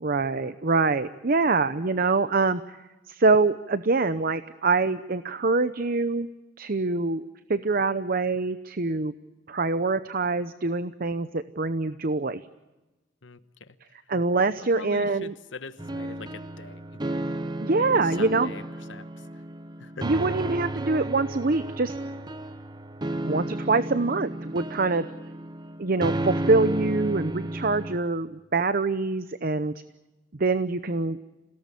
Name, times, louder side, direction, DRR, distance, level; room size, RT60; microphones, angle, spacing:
voice 1, 0.0-2.6 3.1-6.3 6.6-7.2 7.5-9.1 9.5-12.4 14.1-15.3 17.6-18.5 20.0-21.9 23.2-25.1 25.8-29.7 30.4-31.2, right 3 dB, 50° right, 12 dB, 0.8 m, -25 dB
voice 2, 13.2-13.8 14.6-16.9 17.8-18.6 18.9-19.2 19.8-20.1, left 3 dB, 75° left, 12 dB, 1.3 m, -43 dB
sound 1, 15.8-28.0, right 1 dB, 25° right, 1.0 m, -33 dB
27.5 x 18.0 x 8.3 m, 1.1 s
head